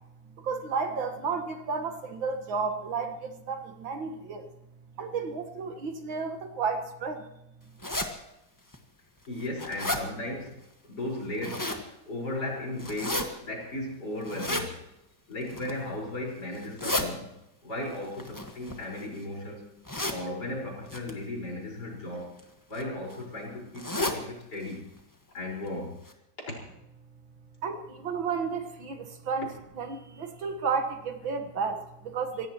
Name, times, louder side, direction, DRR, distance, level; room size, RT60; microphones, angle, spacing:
voice 1, 0.4-4.5 5.0-7.2 27.6-29.5 29.8-32.5, right 5 dB, 75° right, 6 dB, 2.3 m, -32 dB
sound 1, 7.8-8.1 8.7-8.8 9.3-10.0 11.2-11.8 12.8-13.2 14.2-14.7 15.4-15.8 16.5-17.1 18.2-19.2 19.9-20.2 20.9-21.1 22.1-22.4 22.7-22.8 23.1-23.2 23.7-24.2 24.6-24.7 25.0-25.1 25.7-25.8 26.1-26.2, left 1 dB, 10° left, 1.2 m, -32 dB
voice 2, 9.3-11.7 12.1-14.8 15.3-17.3 17.6-19.6 20.1-22.3 22.7-24.9 25.3-26.0 26.5-26.6, left 1 dB, 50° left, -2 dB, 5.6 m, -36 dB
24.5 x 17.0 x 3.0 m, 0.86 s
omnidirectional pair, 2.2 m